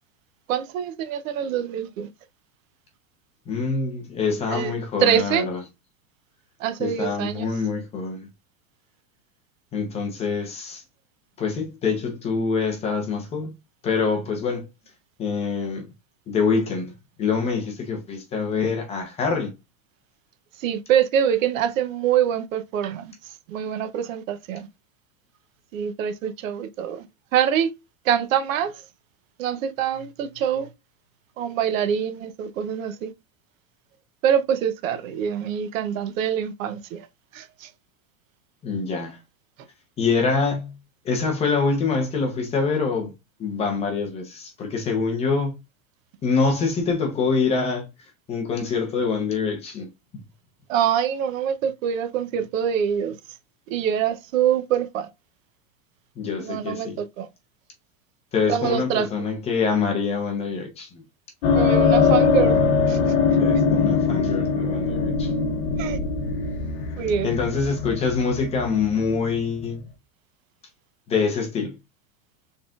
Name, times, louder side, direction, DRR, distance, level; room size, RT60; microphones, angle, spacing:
voice 1, 0.5-2.1 4.5-4.7 5.0-5.5 6.6-7.5 20.6-23.1 23.5-24.7 25.7-27.0 27.3-27.7 28.0-28.8 29.4-30.7 31.4-33.1 34.2-37.1 37.3-37.7 50.7-53.2 53.7-55.1 56.4-57.3 58.5-59.1 61.5-62.6 62.9-63.0 65.8-66.0 67.0-67.3, right 9 dB, 70° right, 0.7 m, -24 dB
voice 2, 3.5-5.6 6.8-8.3 9.7-10.8 11.4-13.5 13.8-14.7 15.2-15.8 16.3-16.9 17.2-19.5 38.6-39.2 40.0-40.7 41.0-43.1 43.4-45.5 46.2-47.9 48.3-49.9 56.2-57.0 58.3-60.9 63.4-65.4 67.2-69.8 71.1-71.8, left 5 dB, 15° left, 0.7 m, -25 dB
sound 1, 61.4-69.8, left 5 dB, 55° left, 1.0 m, -22 dB
4.0 x 3.7 x 2.3 m
supercardioid pair, 170°, 42 cm